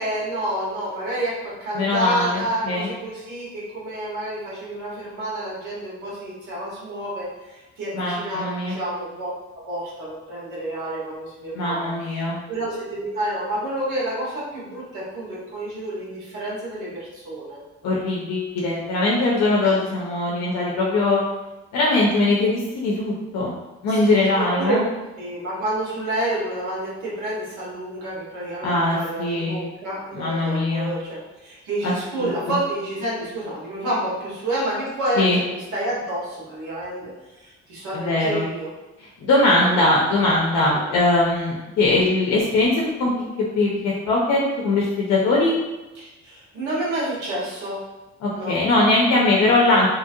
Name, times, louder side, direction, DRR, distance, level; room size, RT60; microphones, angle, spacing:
voice 1, 0.0-9.3 9.6-17.6 19.6-19.7 23.9-24.8 25.2-38.7 39.5-39.9 40.7-40.8 46.0-47.8 48.3-48.6, right 1 dB, 85° right, -6 dB, 1.3 m, -29 dB
voice 2, 1.7-2.9 7.9-8.8 11.5-12.4 17.8-21.2 21.7-23.5 23.8-24.8 28.6-29.6 30.1-30.9 31.8-31.9 32.2-32.6 35.2-35.4 37.9-38.5 39.0-45.5 48.2-49.9, left 2 dB, 65° left, -3 dB, 0.6 m, -21 dB
2.9 x 2.4 x 2.7 m, 1.1 s
cardioid pair, 120°, 29 cm